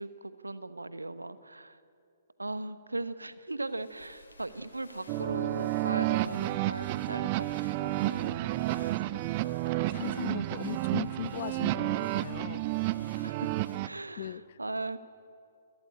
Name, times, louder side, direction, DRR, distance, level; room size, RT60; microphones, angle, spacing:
voice 1, 0.0-1.8 2.4-9.4 13.1-15.0, right 2 dB, 80° right, 13 dB, 1.1 m, -39 dB
sound 1, 3.5-14.1, left 2 dB, 70° left, 4.5 m, -58 dB
sound 2, 5.1-13.9, right 17 dB, 30° right, 0.5 m, -31 dB
voice 2, 9.6-12.7 14.2-14.6, left 11 dB, 45° left, 19 dB, 0.6 m, -39 dB
27.5 x 13.5 x 8.7 m, 2.5 s
figure-of-eight pair, 125°, 0 cm